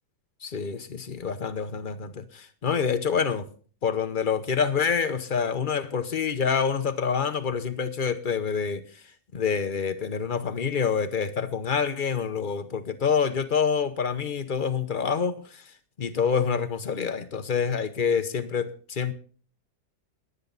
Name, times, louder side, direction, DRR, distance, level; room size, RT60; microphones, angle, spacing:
voice 1, 0.4-3.5 3.8-8.8 9.3-15.6 16.0-19.1, left 6 dB, 40° left, 0.8 m, -27 dB
21.0 x 8.2 x 4.1 m
omnidirectional pair, 1.9 m